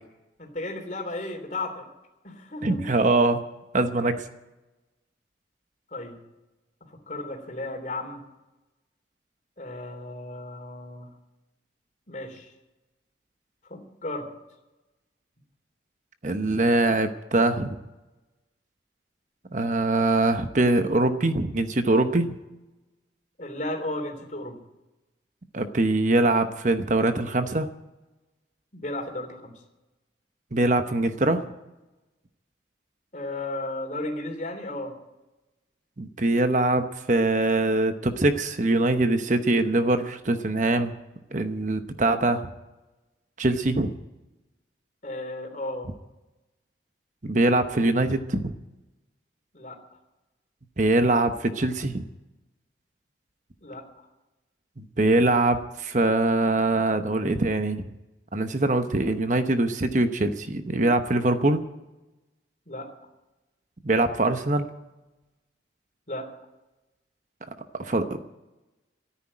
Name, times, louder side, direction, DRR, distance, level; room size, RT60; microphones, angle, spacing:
voice 1, 0.4-1.8 2.2-2.9 5.9-6.2 6.9-8.2 9.6-11.1 12.1-12.5 13.7-14.2 23.4-24.6 28.7-29.5 33.1-34.9 45.0-45.9 49.5-49.8 53.6-54.0 62.7-62.9 66.1-66.3, left 2 dB, 40° left, 3 dB, 3.2 m, -34 dB
voice 2, 2.6-3.4 3.7-4.3 16.2-17.7 19.5-22.3 25.5-27.7 30.5-31.5 36.0-40.9 41.3-42.5 43.4-43.9 47.2-48.5 50.8-52.0 54.8-57.9 58.3-61.6 63.8-64.7 67.7-68.3, right 2 dB, 40° right, 8 dB, 0.9 m, -23 dB
14.0 x 10.0 x 9.8 m, 1.0 s
head